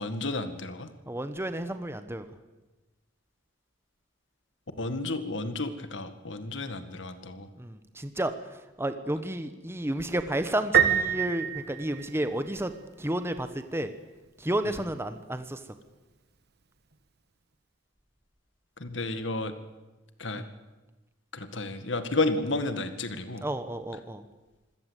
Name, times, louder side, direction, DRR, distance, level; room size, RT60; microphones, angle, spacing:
voice 1, 0.0-0.9 4.8-7.5 14.7-14.8 18.8-19.5 20.2-20.4 21.3-23.4, left 2 dB, 70° left, 10 dB, 1.9 m, -32 dB
voice 2, 1.1-2.3 7.6-12.7 13.0-13.9 14.4-15.6 20.3-20.5 23.4-24.2, right 1 dB, 15° right, 10 dB, 1.1 m, -31 dB
Piano, 10.7-12.6, right 9 dB, 60° right, 1.6 m, -25 dB
25.5 x 16.5 x 8.2 m, 1.2 s
head